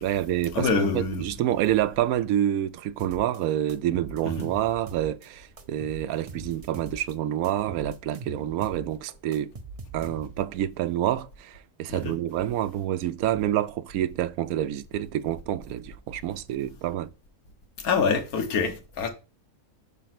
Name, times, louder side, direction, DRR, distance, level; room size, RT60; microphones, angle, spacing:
voice 1, 0.0-9.5 9.9-17.1, right 12 dB, 80° right, 1.0 m, -28 dB
voice 2, 0.5-1.2 4.4-4.5 11.9-12.1 17.8-19.1, left 5 dB, 80° left, 1.5 m, -25 dB
sound 1, 3.0-3.4 3.7-5.3 5.6-7.1 7.4-10.5, right 3 dB, 45° right, 0.4 m, -42 dB
5.1 x 4.0 x 5.8 m
omnidirectional pair, 1.5 m